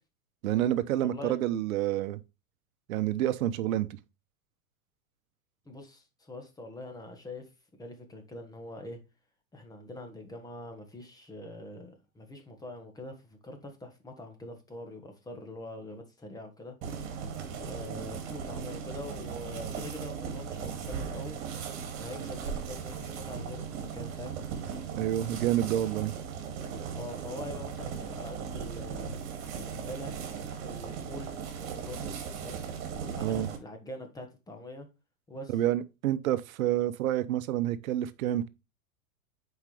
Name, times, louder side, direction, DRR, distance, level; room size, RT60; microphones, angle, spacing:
voice 1, 0.4-2.2 2.9-3.9 24.9-26.1 33.2-33.5 35.5-38.5, right 12 dB, 70° right, 0.9 m, -28 dB
voice 2, 1.0-1.3 5.6-7.4 7.8-9.0 9.5-16.8 17.6-21.4 22.0-24.4 26.9-29.1 29.6-30.1 30.6-31.3 31.6-32.6 32.9-34.9 35.3-35.5, left 1 dB, 10° left, 1.3 m, -44 dB
sound 1, 16.8-33.6, right 6 dB, 50° right, 2.4 m, -38 dB
8.0 x 4.8 x 3.3 m
supercardioid pair, 140°, 43 cm